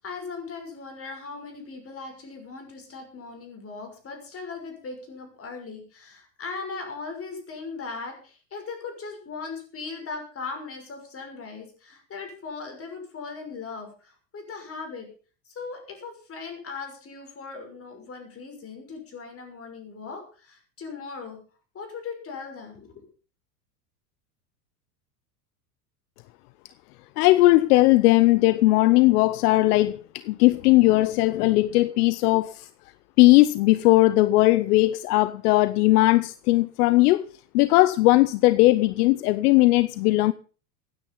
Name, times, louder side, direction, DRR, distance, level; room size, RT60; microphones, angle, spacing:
voice 1, 0.0-15.1 15.5-21.4 21.7-23.0, left 4 dB, 30° left, 6.3 m, -38 dB
voice 2, 27.2-32.7 33.2-37.3 37.5-40.3, left 19 dB, 65° left, 0.8 m, -18 dB
16.0 x 9.8 x 5.6 m
supercardioid pair, 115°, 48 cm